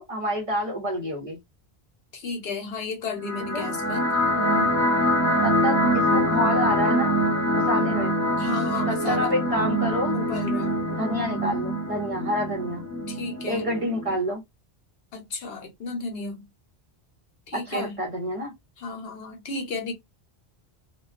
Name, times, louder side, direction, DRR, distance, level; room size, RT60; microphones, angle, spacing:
voice 1, 0.0-1.4 3.5-3.7 5.4-7.2 7.6-8.1 8.9-10.2 10.9-12.8 13.5-14.4 17.5-18.5, equal, 40° right, 0.7 m, -28 dB
voice 2, 2.1-4.7 8.4-9.3 10.1-10.8 13.1-13.7 15.1-16.5 17.5-18.0 18.8-19.9, left 4 dB, 70° left, 1.0 m, -33 dB
sound 1, 3.2-14.2, equal, 15° left, 0.9 m, -24 dB
2.3 x 2.2 x 2.4 m
omnidirectional pair, 1.1 m